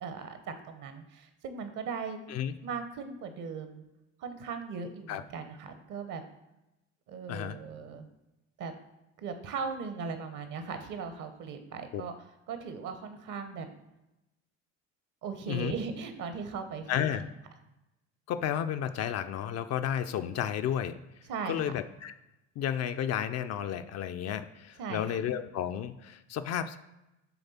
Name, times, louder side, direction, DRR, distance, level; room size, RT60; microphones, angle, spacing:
voice 1, 0.0-2.2 2.6-3.8 4.2-6.2 7.1-8.1 8.6-8.7 9.2-12.1 12.5-13.7 15.2-17.2 21.3-21.7 24.8-25.2, right 5 dB, 55° right, 8 dB, 0.9 m, -38 dB
voice 2, 16.9-17.2 18.3-21.0 21.5-22.1 22.6-26.8, left 9 dB, 45° left, 9 dB, 0.4 m, -32 dB
7.0 x 3.3 x 4.2 m, 0.95 s
hypercardioid pair, 65°, 38 cm